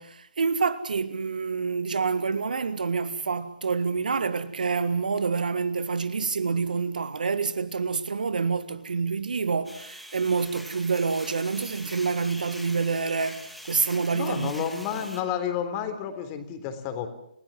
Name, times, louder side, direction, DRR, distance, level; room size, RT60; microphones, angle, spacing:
voice 1, 0.0-14.5, right 5 dB, 70° right, 1.8 m, -27 dB
sound 1, 9.6-15.2, equal, ahead, 2.9 m, -44 dB
voice 2, 14.1-17.1, left 9 dB, 30° left, 3.7 m, -31 dB
29.5 x 17.5 x 7.5 m
figure-of-eight pair, 135°, 5 cm